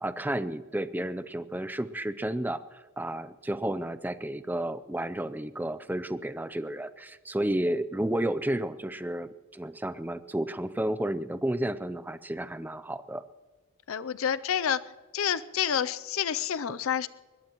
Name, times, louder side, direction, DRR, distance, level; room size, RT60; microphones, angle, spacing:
voice 1, 0.0-13.2, right 1 dB, 10° right, 13 dB, 0.5 m, -32 dB
voice 2, 13.9-14.8 15.1-17.1, left 8 dB, 70° left, 15 dB, 0.5 m, -28 dB
22.5 x 20.5 x 3.0 m, 1.4 s
head